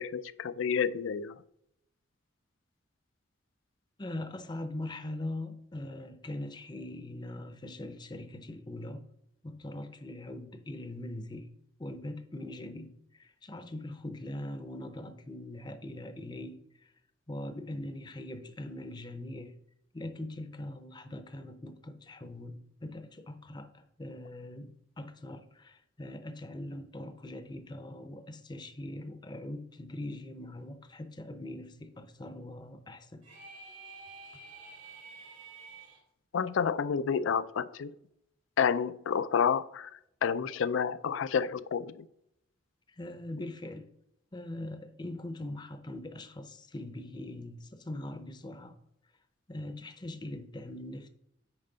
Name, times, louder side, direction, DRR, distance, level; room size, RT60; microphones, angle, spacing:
voice 1, 0.0-1.4 36.3-37.9 38.6-42.1, left 6 dB, 85° left, 0.4 m, -30 dB
voice 2, 4.0-9.1 9.4-11.5 11.8-16.9 17.3-19.5 19.9-33.3 42.9-43.9 44.3-48.7 49.5-51.1, left 1 dB, 25° left, 0.6 m, -41 dB
sound 1, 33.2-36.0, right 3 dB, 80° right, 2.7 m, -49 dB
8.9 x 5.2 x 3.9 m
head